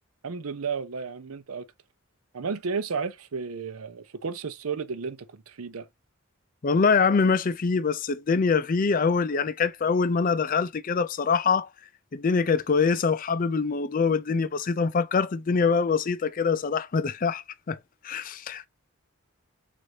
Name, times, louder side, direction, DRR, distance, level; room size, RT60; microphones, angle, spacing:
voice 1, 0.2-1.7 2.3-5.9, right 5 dB, 80° right, 0.6 m, -33 dB
voice 2, 6.6-11.7 12.1-17.8 18.0-18.7, left 5 dB, 40° left, 0.4 m, -24 dB
6.3 x 2.6 x 2.8 m
head